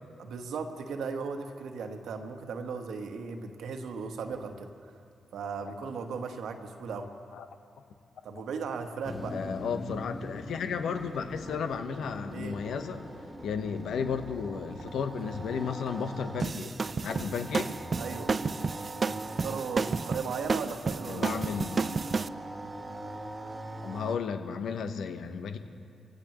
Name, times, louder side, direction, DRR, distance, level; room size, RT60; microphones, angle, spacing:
voice 1, 0.2-4.7 5.3-7.1 8.2-9.4 12.3-12.6 18.0-18.3 19.3-21.4, right 5 dB, 70° right, 5 dB, 1.4 m, -37 dB
Motor vehicle (road), 9.0-18.0, left 2 dB, 40° left, 2.9 m, -44 dB
voice 2, 9.3-13.0 13.4-16.7 17.0-17.7 21.1-22.0 23.8-25.6, left 6 dB, 70° left, 8 dB, 1.1 m, -33 dB
sound 1, 10.9-24.2, right 1 dB, 25° right, 1.7 m, -42 dB
sound 2, 16.4-22.3, right 4 dB, 45° right, 0.5 m, -31 dB
24.0 x 16.5 x 3.1 m, 2.4 s
hypercardioid pair, 45°, 0 cm